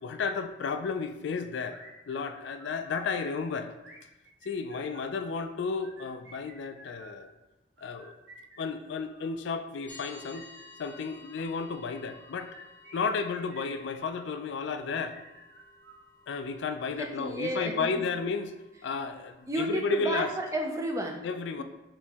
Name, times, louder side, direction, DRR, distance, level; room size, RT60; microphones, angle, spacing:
voice 1, 0.0-1.8 2.1-3.8 4.4-7.3 7.8-8.1 8.6-10.5 10.8-12.5 12.9-15.2 16.3-18.5 18.8-20.3 21.2-21.6, left 4 dB, 60° left, 9 dB, 0.3 m, -33 dB
sound 1, 1.7-3.2 3.8-5.2 5.7-7.3 7.8-9.4 9.9-11.4 12.1-14.4 15.0-16.5, right 1 dB, 60° right, 0.8 m, -53 dB
sound 2, 9.9-19.9, left 2 dB, 10° left, 0.8 m, -55 dB
voice 2, 17.0-17.9 19.5-21.3 21.6-21.7, right 1 dB, 15° right, 2 dB, 0.4 m, -32 dB
4.3 x 2.9 x 3.5 m, 1.0 s
head